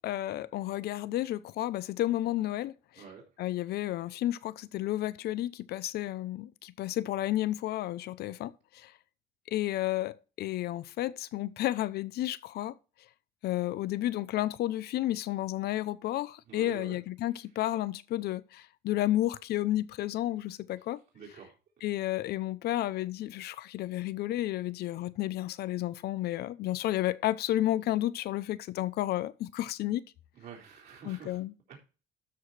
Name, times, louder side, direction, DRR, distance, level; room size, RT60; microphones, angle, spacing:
voice 1, 0.0-3.0 3.4-8.9 9.5-12.8 13.4-21.0 21.8-30.0 31.0-31.5, left 14 dB, 70° left, 0.8 m, -32 dB
voice 2, 3.0-3.3 16.5-17.0 21.1-21.6 30.4-31.4 31.7-31.8, right 6 dB, 65° right, 3.8 m, -47 dB
13.0 x 4.9 x 4.2 m
cardioid pair, 110°, 17 cm